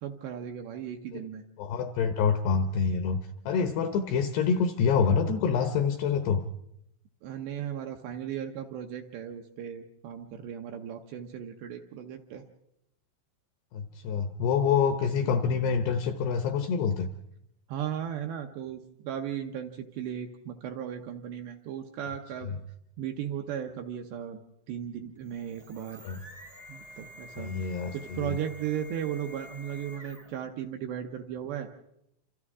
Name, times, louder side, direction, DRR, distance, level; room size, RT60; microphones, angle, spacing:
voice 1, 0.0-1.4 7.2-12.4 17.7-22.5 23.0-24.4 24.7-26.0 26.7-31.7, right 9 dB, 75° right, 4 dB, 2.7 m, -36 dB
voice 2, 1.6-6.5 13.7-17.1 26.0-26.2 27.4-28.3, left 6 dB, 75° left, 7 dB, 2.4 m, -27 dB
sound 1, 25.2-30.5, equal, 5° right, 0.7 m, -49 dB
28.5 x 26.5 x 3.6 m, 0.79 s
omnidirectional pair, 5.7 m